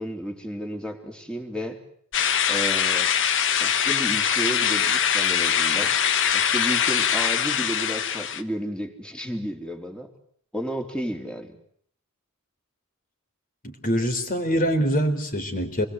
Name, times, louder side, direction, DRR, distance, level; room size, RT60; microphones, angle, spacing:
voice 1, 0.0-1.8 2.5-3.1 3.6-6.0 6.3-10.1 10.5-11.6, equal, 5° left, 3 dB, 3.5 m, -32 dB
sound 1, 2.1-8.4, left 8 dB, 60° left, 1.4 m, -22 dB
voice 2, 13.6-15.8, equal, 40° left, 7 dB, 3.9 m, -24 dB
27.5 x 21.5 x 8.2 m, 0.63 s
head